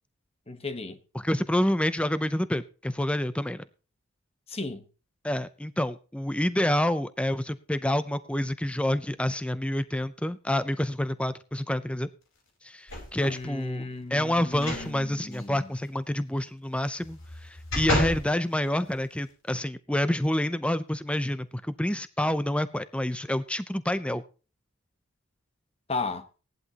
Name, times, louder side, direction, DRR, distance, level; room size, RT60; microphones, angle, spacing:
voice 1, 0.5-1.0 4.5-4.8 13.2-15.7 25.9-26.3, left 3 dB, 25° left, 1.1 m, -35 dB
voice 2, 1.1-3.6 5.2-12.1 12.6-24.2, left 1 dB, 5° left, 0.5 m, -28 dB
sound 1, 12.9-13.4 14.5-14.9 15.3-15.4 17.0-18.3 18.9-19.0, left 1 dB, 60° left, 4.3 m, -30 dB
17.5 x 11.0 x 2.9 m
head